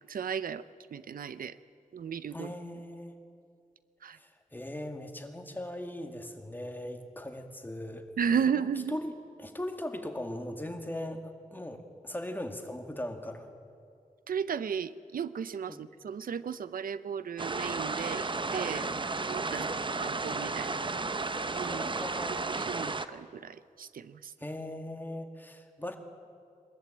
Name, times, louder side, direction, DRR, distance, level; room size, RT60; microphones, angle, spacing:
voice 1, 0.1-0.6 0.9-1.6 1.9-2.5 4.0-4.2 8.2-9.0 14.3-18.9 19.2-19.7 20.0-20.8 21.5-21.9 22.5-24.3, right 7 dB, 85° right, 15 dB, 0.5 m, -34 dB
voice 2, 2.3-3.2 4.1-8.1 8.5-11.2 11.5-13.5 15.7-15.8 18.8-19.1 19.5-19.7 21.7-22.5 24.4-26.0, left 1 dB, 15° left, 5 dB, 2.0 m, -39 dB
sound 1, 17.4-23.1, right 3 dB, 35° right, 0.8 m, -33 dB
22.0 x 13.5 x 8.8 m, 2.4 s
wide cardioid pair, 75°, 14 cm